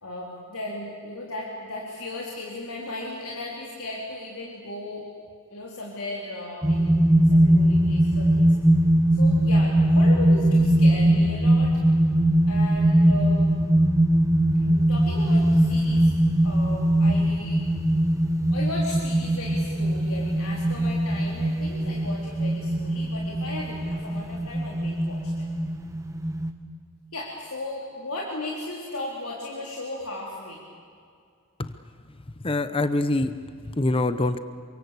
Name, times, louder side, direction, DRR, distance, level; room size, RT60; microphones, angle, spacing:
voice 1, 0.0-5.0 5.5-6.9 7.2-8.6 9.1-11.8 12.5-13.5 14.6-16.1 16.4-17.6 18.5-25.5 27.1-30.6, left 2 dB, 85° left, -3 dB, 3.8 m, -36 dB
sound 1, 6.6-26.5, right 1 dB, 15° right, 1.5 m, -21 dB
voice 2, 32.4-34.4, left 2 dB, 25° left, 11 dB, 0.9 m, -25 dB
27.5 x 24.5 x 8.4 m, 2.3 s
head